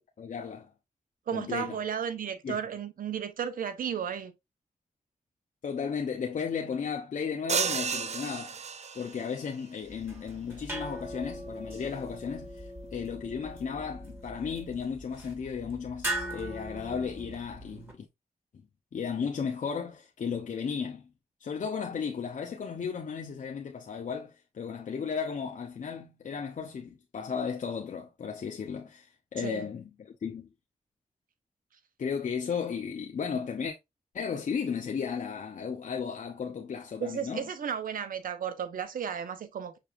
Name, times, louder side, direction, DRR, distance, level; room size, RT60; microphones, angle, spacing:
voice 1, 0.2-0.7 1.3-1.8 2.4-2.5 5.6-8.6 8.9-18.1 18.9-21.0 21.4-30.5 32.0-33.8 34.1-37.5, left 6 dB, 60° left, 0.7 m, -35 dB
voice 2, 1.3-4.3 29.4-29.6 37.0-39.8, right 8 dB, 80° right, 0.8 m, -34 dB
sound 1, 7.5-9.3, right 6 dB, 50° right, 0.5 m, -32 dB
sound 2, 9.9-17.9, right 1 dB, 15° right, 2.7 m, -40 dB
5.9 x 3.3 x 2.5 m
cardioid pair, 55°, 14 cm